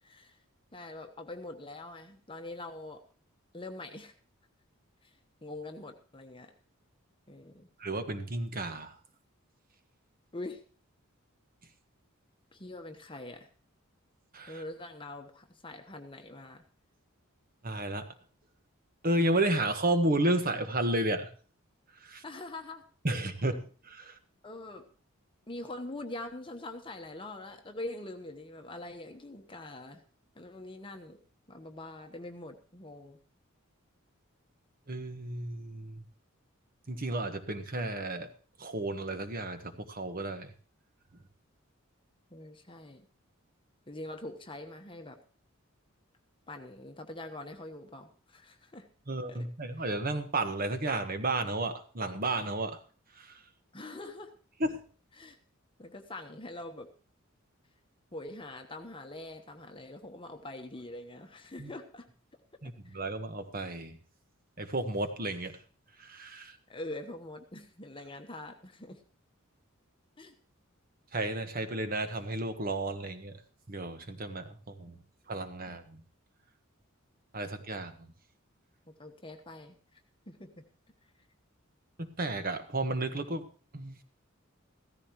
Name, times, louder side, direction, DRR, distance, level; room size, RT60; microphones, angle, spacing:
voice 1, 0.0-0.4 0.7-3.0 3.5-4.1 5.0-5.1 5.4-6.5 7.3-7.7 10.3-10.6 12.5-13.5 14.5-16.6 22.2-22.8 24.4-24.9 25.5-30.0 30.4-31.2 31.5-33.2 42.3-43.1 43.9-45.2 46.5-48.9 49.3-49.5 53.7-54.3 55.2-55.4 55.8-56.9 58.1-62.1 62.8-63.0 66.7-69.0 70.2-70.3 74.9-75.1 78.9-80.0 80.3-80.6, left 2 dB, 25° left, 5 dB, 1.0 m, -44 dB
voice 2, 7.8-9.0 14.3-14.6 17.6-18.1 19.0-21.3 22.0-22.2 23.0-24.2 34.9-36.0 36.9-38.3 38.6-40.5 49.1-52.8 53.1-53.4 54.6-54.8 61.6-61.7 62.6-64.0 64.6-65.5 66.0-66.6 71.1-73.4 73.7-74.9 75.3-76.0 77.3-78.1 82.0-83.5 83.7-84.0, right 2 dB, 45° right, 8 dB, 1.4 m, -32 dB
16.0 x 14.0 x 3.1 m, 0.40 s
head